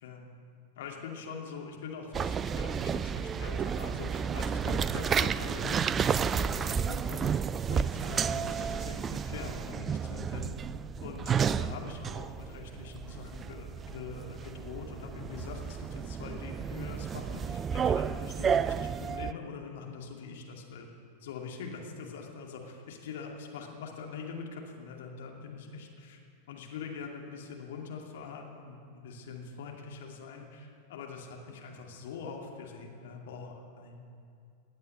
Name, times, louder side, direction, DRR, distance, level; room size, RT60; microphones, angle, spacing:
voice 1, 0.8-10.5 11.0-20.9 21.2-26.2 26.5-34.1, left 5 dB, 55° left, 0 dB, 2.4 m, -43 dB
sound 1, 2.1-19.3, right 7 dB, 20° right, 0.3 m, -32 dB
18.0 x 9.4 x 7.8 m, 2.4 s
figure-of-eight pair, 90°, 0 cm